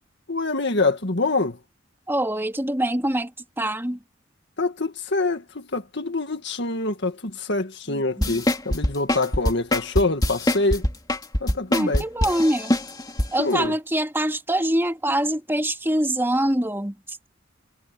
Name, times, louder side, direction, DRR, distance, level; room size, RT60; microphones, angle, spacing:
voice 1, 0.3-1.6 4.6-10.8 11.4-12.0 13.4-13.7, left 2 dB, 55° left, 1.9 m, -25 dB
voice 2, 2.1-3.3 3.6-4.0 7.9-8.4 11.7-12.7 13.3-17.2, right 1 dB, 10° right, 3.1 m, -24 dB
sound 1, 8.2-13.3 13.6-13.7, left 1 dB, 20° left, 2.6 m, -23 dB
head